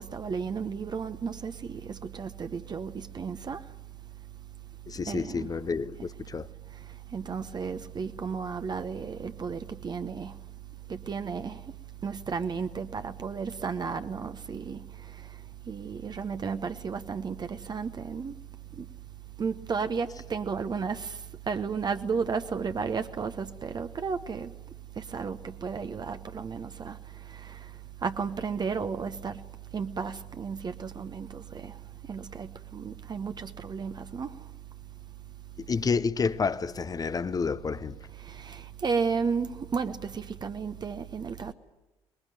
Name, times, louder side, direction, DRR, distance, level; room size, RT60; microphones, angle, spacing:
voice 1, 0.0-3.7 5.0-5.6 6.7-10.4 10.9-11.8 12.0-18.4 18.7-18.9 19.4-24.5 25.0-34.5 38.1-41.5, right 5 dB, 30° right, 1.0 m, -34 dB
voice 2, 4.9-6.5 35.6-38.0, left 5 dB, 25° left, 0.8 m, -29 dB
23.5 x 21.5 x 9.1 m
figure-of-eight pair, 50°, 14 cm